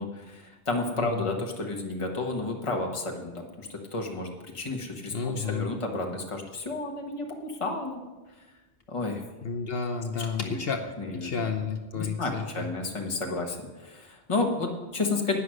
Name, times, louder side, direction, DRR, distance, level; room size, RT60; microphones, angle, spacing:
voice 1, 0.0-4.3 4.5-8.0 8.9-9.2 10.1-10.6 11.0-11.4 11.9-15.4, left 3 dB, 30° left, 1 dB, 1.4 m, -31 dB
voice 2, 5.1-5.7 9.4-10.8 11.2-12.7, left 5 dB, 60° left, 5 dB, 1.1 m, -31 dB
11.0 x 9.8 x 6.5 m, 1.2 s
omnidirectional pair, 1.2 m